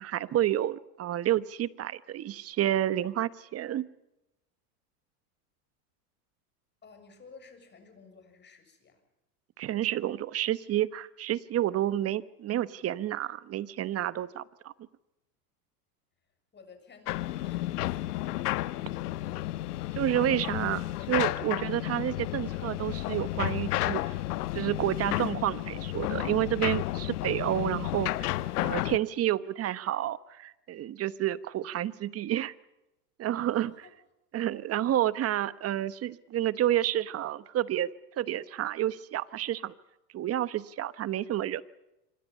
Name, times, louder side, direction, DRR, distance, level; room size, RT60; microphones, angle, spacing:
voice 1, 0.0-3.9 9.6-14.7 20.0-24.2 24.5-28.3 28.6-32.5 33.2-33.7 34.3-37.9 38.2-39.7 40.1-41.6, right 12 dB, 30° right, 17 dB, 1.1 m, -30 dB
voice 2, 6.8-9.0 16.5-19.8 20.1-20.8 33.5-34.0, left 4 dB, 20° left, 6 dB, 7.2 m, -55 dB
sound 1, 17.1-29.0, left 16 dB, 75° left, 1.2 m, -32 dB
26.5 x 25.0 x 5.6 m, 0.95 s
hypercardioid pair, 110°, 47 cm